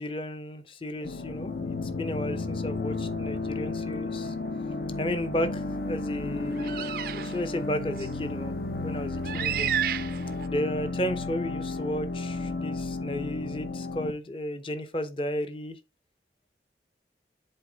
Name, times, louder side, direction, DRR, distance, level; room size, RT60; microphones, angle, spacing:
voice 1, 0.0-1.5 1.9-4.3 5.0-9.7 10.5-15.8, left 1 dB, 30° left, 0.7 m, -33 dB
sound 1, 1.0-14.1, left 3 dB, 65° left, 0.8 m, -33 dB
sound 2, 6.6-7.3 8.0-8.1 9.2-10.5, right 10 dB, 55° right, 0.3 m, -31 dB
7.9 x 3.8 x 3.9 m
head